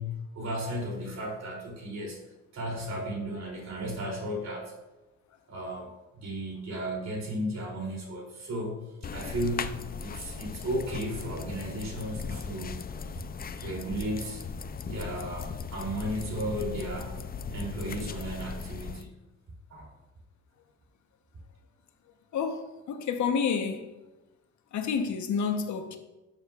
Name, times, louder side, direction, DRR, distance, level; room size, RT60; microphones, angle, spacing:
voice 1, 0.0-2.2 2.5-4.7 5.5-12.8 13.6-14.4 14.8-17.2 17.5-19.1 19.7-19.9, equal, 60° right, 3.1 m, -34 dB
sound 1, 9.0-19.0, left 5 dB, 30° left, 0.5 m, -38 dB
voice 2, 22.3-23.9 24.7-26.0, left 6 dB, 70° left, 1.1 m, -29 dB
12.0 x 7.2 x 2.4 m
cardioid pair, 90°, 30 cm